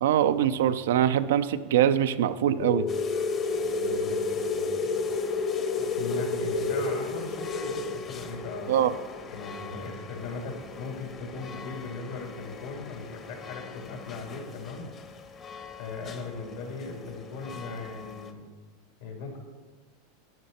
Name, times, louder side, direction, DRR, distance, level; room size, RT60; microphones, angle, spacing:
voice 1, 0.0-2.9 8.7-8.9, right 10 dB, 80° right, 11 dB, 0.6 m, -23 dB
sound 1, 2.6-10.9, left 3 dB, 60° left, 1.8 m, -30 dB
sound 2, 2.9-18.3, left 5 dB, 35° left, 1.1 m, -44 dB
voice 2, 3.7-5.1 5.8-8.7 9.3-14.9 15.8-18.4 19.0-19.4, left 3 dB, 75° left, 1 dB, 3.5 m, -38 dB
12.0 x 9.4 x 4.3 m, 1.3 s
hypercardioid pair, 110°, 0 cm